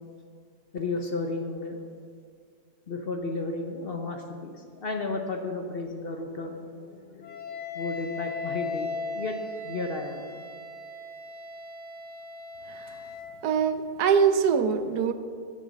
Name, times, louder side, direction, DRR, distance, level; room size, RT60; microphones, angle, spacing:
voice 1, 0.7-1.8 2.9-7.4 7.7-10.2, left 3 dB, 45° left, 4 dB, 0.8 m, -33 dB
Wind instrument woodwind instrument, 7.2-13.4, left 3 dB, 30° left, 1.2 m, -37 dB
voice 2, 13.4-15.1, right 6 dB, 80° right, 10 dB, 1.2 m, -23 dB
9.1 x 8.9 x 6.4 m, 2.1 s
omnidirectional pair, 1.7 m